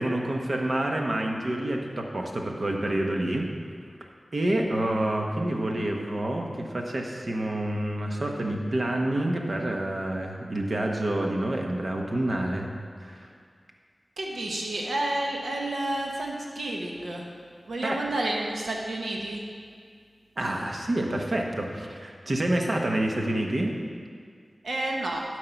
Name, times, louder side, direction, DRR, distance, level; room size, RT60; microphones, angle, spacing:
voice 1, 0.0-3.5 4.3-12.7 13.0-13.3 17.8-18.0 20.4-23.8, right 1 dB, 60° right, 1 dB, 1.2 m, -28 dB
voice 2, 4.5-5.0 14.2-17.2 17.7-19.4 24.6-25.2, right 1 dB, 85° right, -1 dB, 1.1 m, -30 dB
12.0 x 4.8 x 5.9 m, 2.1 s
cardioid pair, 50°, 0 cm